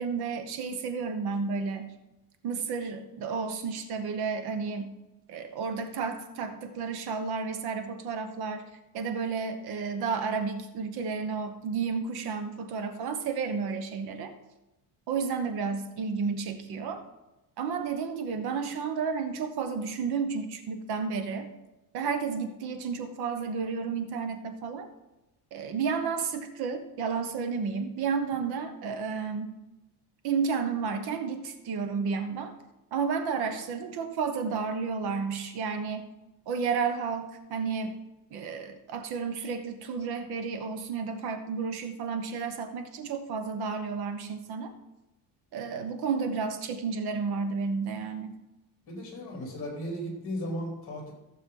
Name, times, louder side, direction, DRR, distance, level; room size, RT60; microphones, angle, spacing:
voice 1, 0.0-1.9 2.4-4.9 5.3-8.6 8.9-14.3 15.1-17.0 17.6-21.5 21.9-24.9 25.5-29.5 30.2-32.5 32.9-36.0 36.5-37.9 38.3-44.7 45.5-48.4, right 5 dB, 65° right, 8 dB, 1.2 m, -32 dB
voice 2, 48.9-51.1, equal, 30° left, 0 dB, 3.1 m, -35 dB
15.5 x 6.7 x 3.8 m, 0.97 s
cardioid pair, 170°, 41 cm